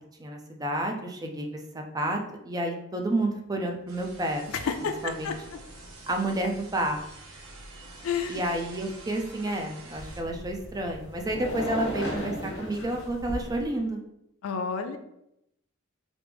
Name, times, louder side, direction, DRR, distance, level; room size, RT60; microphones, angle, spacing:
voice 1, 0.2-2.2 2.4-4.5 5.0-5.3 6.1-7.0 8.3-14.0, right 1 dB, 20° right, 2 dB, 0.4 m, -30 dB
sound 1, 3.9-10.2, right 2 dB, 90° right, 0.7 m, -47 dB
voice 2, 4.5-5.3 8.0-8.4 14.4-15.0, left 6 dB, 80° left, 7 dB, 0.4 m, -30 dB
sound 2, 9.9-13.7, left 1 dB, 60° left, 1.2 m, -36 dB
3.3 x 2.5 x 3.3 m, 0.81 s
head